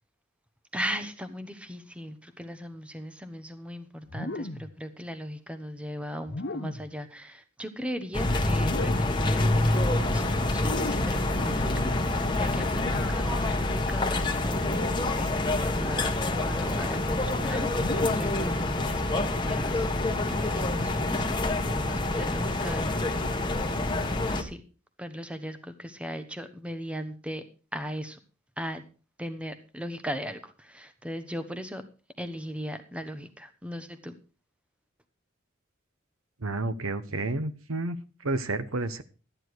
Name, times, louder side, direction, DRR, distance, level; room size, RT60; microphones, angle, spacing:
voice 1, 0.7-23.3 24.3-24.6 25.0-27.4 27.7-28.2 28.6-28.8 29.2-31.8 32.2-34.1, equal, 5° right, 1.0 m, -38 dB
sound 1, 4.1-4.8 6.2-7.0 8.5-9.3 10.5-11.3 12.8-13.2 14.6-15.1 16.2-16.6 17.7-18.4, left 2 dB, 55° left, 0.9 m, -36 dB
sound 2, 8.1-24.4, left 2 dB, 20° left, 1.3 m, -27 dB
voice 2, 36.4-38.0 38.2-39.0, right 2 dB, 85° right, 1.1 m, -30 dB
13.5 x 10.0 x 4.7 m
head